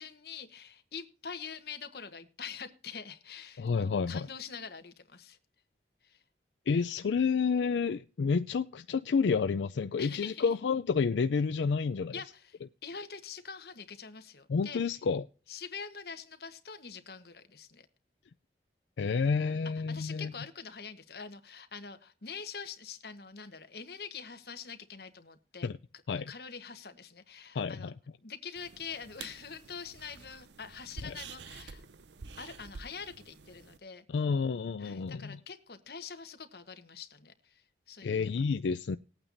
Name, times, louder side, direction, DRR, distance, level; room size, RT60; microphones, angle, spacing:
voice 1, 0.0-5.4 6.0-6.2 10.0-10.5 12.1-15.0 15.5-17.9 19.9-25.7 26.3-27.9 28.2-31.8 32.4-34.0 34.8-38.3, left 6 dB, 60° left, 1.2 m, -45 dB
voice 2, 3.6-4.3 6.7-12.1 14.5-15.2 19.0-20.3 25.6-25.8 26.1-26.3 27.5-27.9 31.0-31.1 34.1-35.4 38.0-39.0, left 5 dB, 90° left, 0.4 m, -29 dB
sound 1, 28.6-33.8, right 5 dB, 85° right, 0.7 m, -49 dB
19.0 x 8.9 x 2.6 m
head